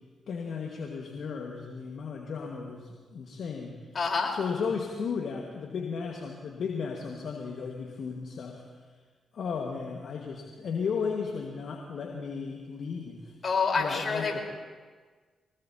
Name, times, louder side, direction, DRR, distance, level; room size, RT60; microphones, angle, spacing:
voice 1, 0.3-3.8 4.3-8.6 9.3-13.4 13.8-14.4, left 5 dB, 65° left, 0 dB, 1.6 m, -35 dB
voice 2, 3.9-4.3 13.4-14.4, left 4 dB, 50° left, 1 dB, 4.1 m, -27 dB
24.5 x 19.5 x 2.8 m, 1.5 s
hypercardioid pair, 45°, 0 cm